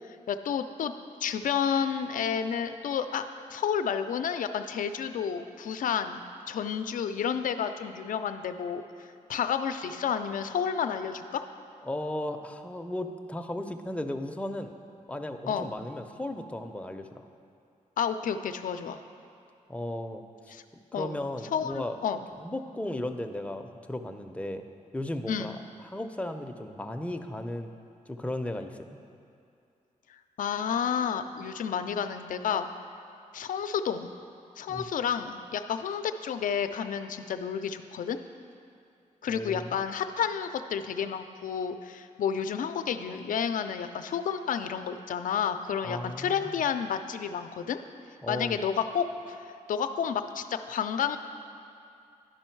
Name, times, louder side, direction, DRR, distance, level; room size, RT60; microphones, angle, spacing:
voice 1, 0.1-0.9 1.2-3.2 3.5-6.2 6.5-11.4 15.5-15.7 18.0-19.0 20.5-20.6 20.9-21.2 21.5-22.2 25.3-25.6 30.4-32.7 33.3-34.2 34.6-38.2 39.2-47.8 48.3-49.4 49.7-51.2, left 7 dB, 70° left, 9 dB, 0.4 m, -30 dB
voice 2, 11.8-14.8 15.1-17.2 19.7-20.2 20.9-22.0 22.4-24.6 24.9-25.6 25.8-27.7 28.1-29.0 34.7-34.9 39.3-39.7 45.8-46.5 48.2-48.6, left 1 dB, 10° left, 5 dB, 0.5 m, -35 dB
11.0 x 5.3 x 4.5 m, 2.5 s
cardioid pair, 70°, 14 cm